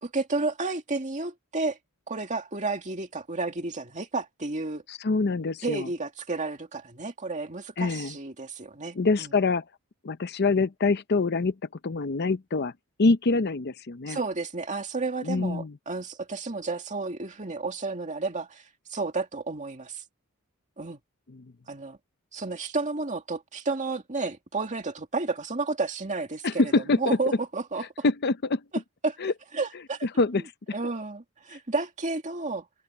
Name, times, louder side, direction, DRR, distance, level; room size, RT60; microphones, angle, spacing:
voice 1, 0.0-1.8 2.1-4.8 5.6-9.3 14.1-18.6 18.9-20.0 20.8-21.0 21.7-22.0 22.3-28.0 29.0-29.2 29.5-30.1 30.7-32.7, right 3 dB, 35° right, 2.3 m, -31 dB
voice 2, 4.9-5.9 7.8-8.2 8.9-9.6 10.0-11.5 11.8-12.7 13.0-14.2 15.2-15.7 21.3-21.5 26.4-27.2 28.0-28.6 29.2-29.3 30.2-30.4, left 3 dB, 50° left, 0.6 m, -25 dB
open air
head